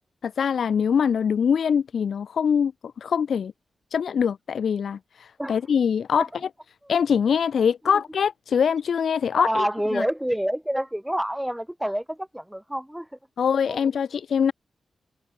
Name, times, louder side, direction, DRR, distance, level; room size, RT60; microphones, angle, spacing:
voice 1, 0.2-3.5 3.9-6.3 6.9-9.7 9.9-10.0 13.4-14.5, left 7 dB, 70° left, 0.4 m, -23 dB
voice 2, 9.3-13.1 13.7-13.8, equal, 5° right, 0.9 m, -27 dB
wide cardioid pair, 175°, 0 cm